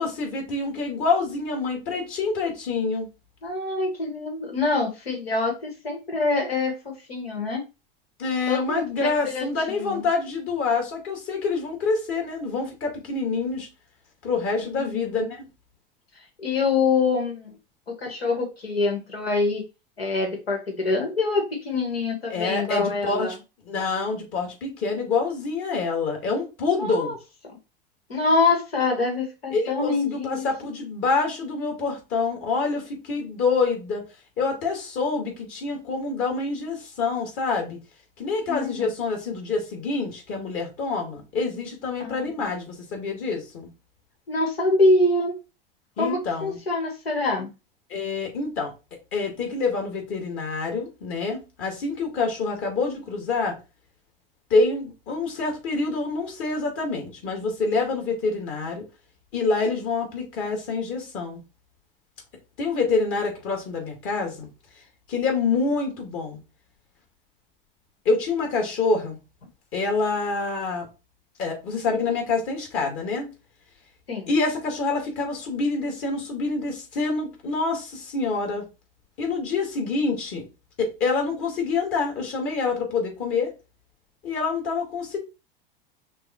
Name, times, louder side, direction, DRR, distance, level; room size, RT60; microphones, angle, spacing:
voice 1, 0.0-3.1 8.2-13.7 14.2-15.4 22.3-23.4 23.7-27.1 29.5-34.0 34.4-37.8 38.2-43.7 46.0-46.6 47.9-48.7 49.1-53.6 54.5-58.8 59.3-61.4 62.6-64.5 65.1-66.4 68.1-69.2 69.7-70.9 71.4-73.3 74.3-78.6 79.2-80.5 80.8-83.5 84.2-85.2, left 4 dB, 45° left, 2.1 m, -26 dB
voice 2, 3.4-7.6 8.5-8.9 9.2-10.0 14.6-15.3 16.4-17.5 17.9-19.6 20.0-23.3 26.7-27.1 28.1-30.5 38.5-38.9 42.0-42.5 44.3-45.3 46.0-47.5 74.1-74.3, left 3 dB, 85° left, 1.6 m, -25 dB
6.0 x 2.4 x 3.0 m
hypercardioid pair, 90°, 29 cm